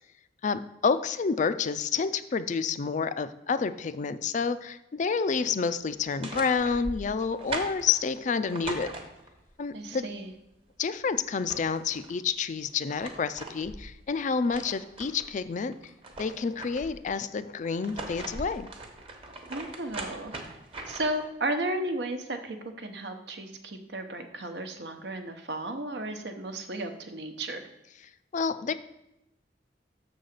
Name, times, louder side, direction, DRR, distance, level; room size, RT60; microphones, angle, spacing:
voice 1, 0.4-8.9 9.6-10.1 10.8-15.7 16.2-18.7 28.3-28.7, left 5 dB, 45° left, 13 dB, 0.4 m, -29 dB
sound 1, 6.0-9.5 11.0-11.1 11.3-12.1 12.7-15.3 15.7-17.0 17.6-21.3, right 2 dB, 30° right, 1.0 m, -40 dB
voice 2, 9.7-10.3 19.5-20.3 20.9-27.6, right 1 dB, 70° right, 6 dB, 0.9 m, -34 dB
6.8 x 4.0 x 6.6 m, 0.91 s
head